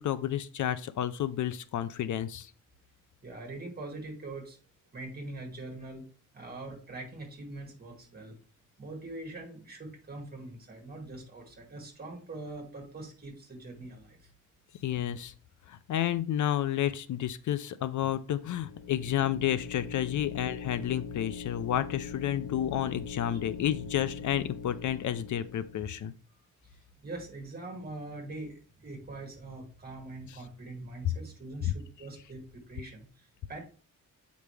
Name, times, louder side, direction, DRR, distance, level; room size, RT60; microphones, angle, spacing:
voice 1, 0.0-2.5 14.8-15.3 15.7-26.1 30.3-30.4 31.6-31.7, left 11 dB, 65° left, 14 dB, 0.5 m, -31 dB
voice 2, 3.2-4.6 4.9-6.0 6.3-8.4 8.8-14.3 23.3-23.4 26.3-26.4 26.7-33.6, right 2 dB, 30° right, 1 dB, 2.2 m, -43 dB
sound 1, 18.3-26.0, left 6 dB, 80° left, 0.9 m, -42 dB
7.7 x 5.2 x 3.3 m, 0.39 s
wide cardioid pair, 170°, 32 cm